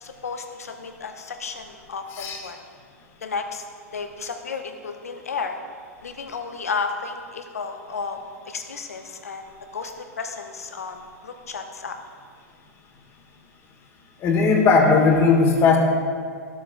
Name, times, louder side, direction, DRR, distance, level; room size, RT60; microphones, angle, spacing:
voice 1, 0.0-2.6 3.2-3.6 3.9-5.6 6.0-8.2 8.4-12.0, left 5 dB, 75° left, 5 dB, 0.8 m, -33 dB
voice 2, 14.2-15.8, left 4 dB, 30° left, 2 dB, 1.4 m, -17 dB
13.5 x 7.4 x 2.5 m, 2.1 s
figure-of-eight pair, 100°, 8 cm